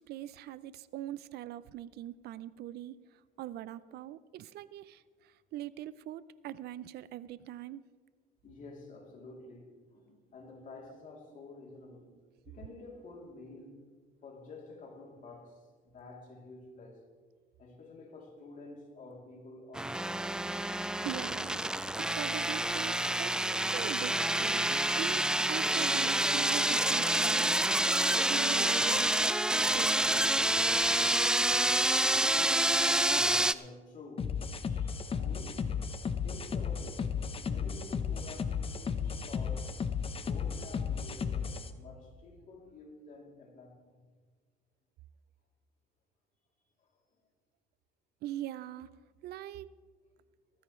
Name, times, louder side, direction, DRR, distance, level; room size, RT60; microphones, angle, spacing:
voice 1, 0.1-3.0 3.4-5.0 5.5-7.8 21.0-21.6 22.0-29.4 29.7-30.0 48.2-48.9 49.2-49.7, right 13 dB, 70° right, 0.5 m, -42 dB
voice 2, 8.4-12.1 12.4-13.9 14.2-17.0 17.6-20.4 32.4-35.8 36.2-39.9 40.2-44.0, left 2 dB, 50° left, 3.0 m, -50 dB
sound 1, 19.7-33.5, right 1 dB, 5° right, 0.3 m, -28 dB
sound 2, 34.2-41.7, left 6 dB, 35° left, 0.9 m, -34 dB
18.5 x 14.5 x 3.2 m
cardioid pair, 110°, 17 cm